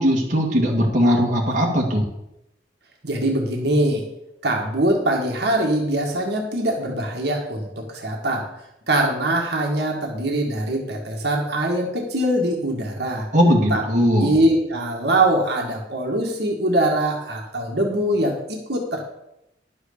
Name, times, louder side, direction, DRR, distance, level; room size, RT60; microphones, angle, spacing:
voice 1, 0.0-2.1 13.3-14.3, equal, 45° right, -2 dB, 2.1 m, -19 dB
voice 2, 3.0-4.0 4.4-8.4 8.9-13.3 13.7-13.8 14.1-19.0, right 1 dB, 60° right, 0 dB, 2.0 m, -22 dB
11.0 x 6.4 x 6.8 m, 0.85 s
head